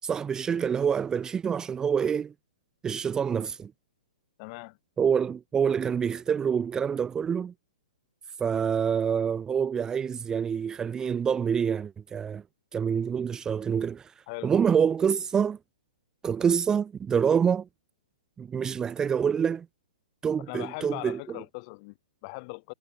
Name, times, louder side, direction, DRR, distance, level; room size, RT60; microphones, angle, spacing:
voice 1, 0.0-2.3 2.8-3.7 5.0-7.5 8.4-12.4 12.7-15.6 16.2-17.7 18.4-19.7 20.2-21.4, right 7 dB, 15° right, 0.6 m, -26 dB
voice 2, 4.4-4.8 14.3-14.5 20.5-22.7, left 31 dB, 40° left, 7.1 m, -40 dB
hypercardioid pair, 130°, 4 cm